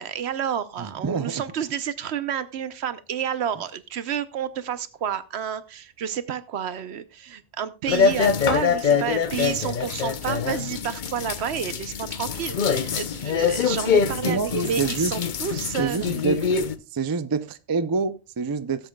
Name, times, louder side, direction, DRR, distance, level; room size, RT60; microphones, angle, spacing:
voice 1, 0.0-16.2, right 8 dB, 80° right, 13 dB, 1.0 m, -30 dB
voice 2, 0.8-1.4 14.2-15.1 15.8-16.6 16.9-18.9, right 5 dB, 35° right, 13 dB, 0.3 m, -27 dB
sound 1, 7.9-16.7, left 6 dB, 50° left, 0.8 m, -24 dB
17.5 x 7.9 x 2.3 m, 0.31 s
omnidirectional pair, 1.1 m